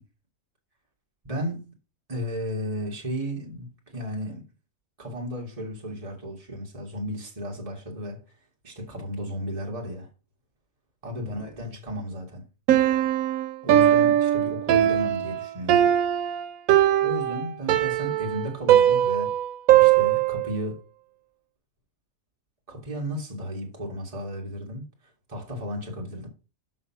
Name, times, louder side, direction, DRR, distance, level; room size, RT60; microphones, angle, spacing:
voice 1, 1.2-1.7 2.1-4.4 5.0-8.2 8.6-10.1 11.0-12.4 13.6-15.9 17.0-19.3 19.8-20.8 22.7-24.8 25.3-26.3, equal, 25° right, 2.1 m, -34 dB
Piano, 12.7-20.5, right 11 dB, 90° right, 1.1 m, -20 dB
6.3 x 6.0 x 5.9 m
omnidirectional pair, 1.4 m